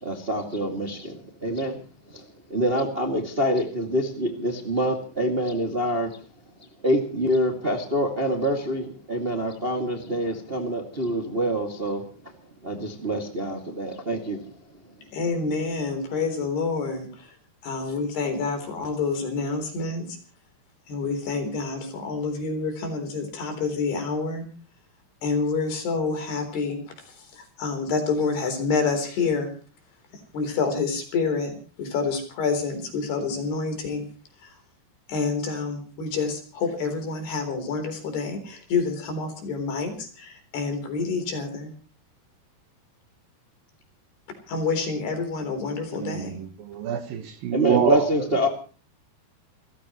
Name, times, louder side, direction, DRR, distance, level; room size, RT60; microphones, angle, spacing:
voice 1, 0.0-6.2 6.8-12.3 12.6-14.4 47.5-48.5, equal, 20° right, 1.6 m, -26 dB
voice 2, 15.1-17.1 17.6-20.1 20.9-24.5 25.2-26.8 27.3-29.5 30.3-31.5 31.8-34.1 35.1-41.7 44.5-46.4, left 4 dB, 70° left, 5.9 m, -27 dB
voice 3, 46.0-48.0, right 8 dB, 65° right, 2.8 m, -26 dB
29.5 x 15.0 x 3.1 m
omnidirectional pair, 4.8 m